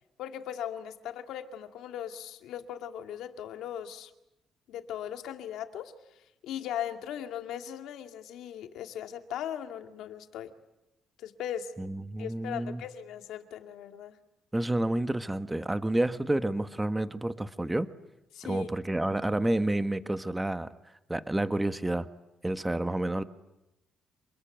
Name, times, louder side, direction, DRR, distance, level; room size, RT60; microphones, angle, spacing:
voice 1, 0.2-4.1 4.7-5.9 6.4-10.5 11.2-11.7 12.2-14.2 18.3-18.7, left 10 dB, 85° left, 6 dB, 2.3 m, -38 dB
voice 2, 11.8-12.8 14.5-17.9 18.4-20.7 21.1-22.1 22.4-23.2, right 1 dB, 10° right, 11 dB, 1.3 m, -29 dB
27.5 x 21.5 x 9.1 m, 0.92 s
cardioid pair, 90°, 0 cm